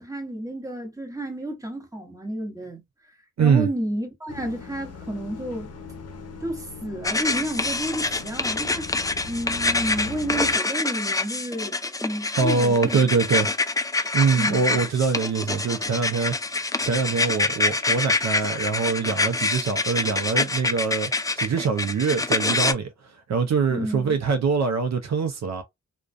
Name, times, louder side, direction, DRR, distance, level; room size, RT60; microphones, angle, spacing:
voice 1, 0.0-2.8 3.4-5.7 6.4-11.7 12.0-13.1 13.4-13.5 14.4-14.8 23.7-24.2, right 1 dB, 10° right, 1.0 m, -31 dB
voice 2, 3.4-3.7 12.4-13.5 14.1-16.3 16.8-25.6, right 5 dB, 65° right, 0.5 m, -24 dB
sound 1, 4.3-10.6, left 5 dB, 55° left, 0.7 m, -40 dB
sound 2, 7.0-22.7, left 3 dB, 10° left, 0.3 m, -26 dB
2.3 x 2.2 x 2.5 m
cardioid pair, 65°, 30 cm